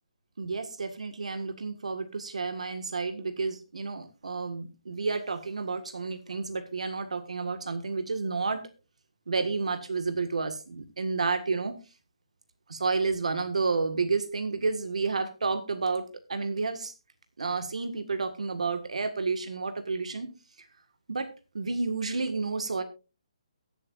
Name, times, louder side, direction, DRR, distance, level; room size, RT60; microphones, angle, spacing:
voice 1, 0.4-8.7 9.3-11.7 12.7-16.0 16.3-16.9 17.4-20.3 21.1-21.3 21.5-22.8, right 4 dB, 85° right, 9 dB, 1.7 m, -30 dB
22.5 x 7.8 x 2.5 m, 0.30 s
hypercardioid pair, 180°, 3 cm